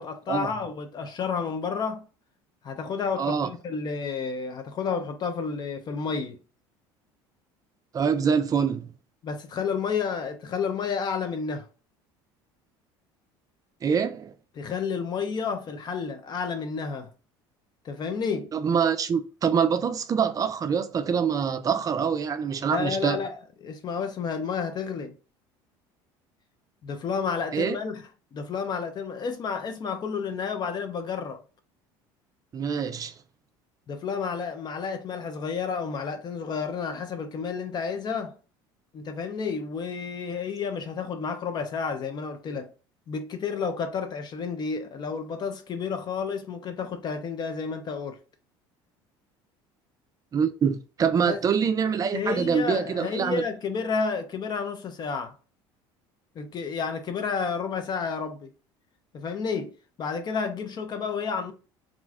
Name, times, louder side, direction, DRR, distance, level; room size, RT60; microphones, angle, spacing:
voice 1, 0.0-2.0 2.6-6.4 9.2-11.6 14.6-17.1 17.8-18.5 22.7-25.1 26.8-28.0 28.3-31.4 33.9-38.4 38.9-42.7 43.1-48.2 51.3-51.4 52.1-55.3 56.4-58.5 59.1-61.5, left 5 dB, 40° left, 0.4 m, -31 dB
voice 2, 3.2-3.5 7.9-8.9 13.8-14.3 18.5-23.2 27.5-27.8 32.5-33.1 50.3-53.4, right 6 dB, 30° right, 0.4 m, -25 dB
2.4 x 2.2 x 3.5 m
supercardioid pair, 95°, 11 cm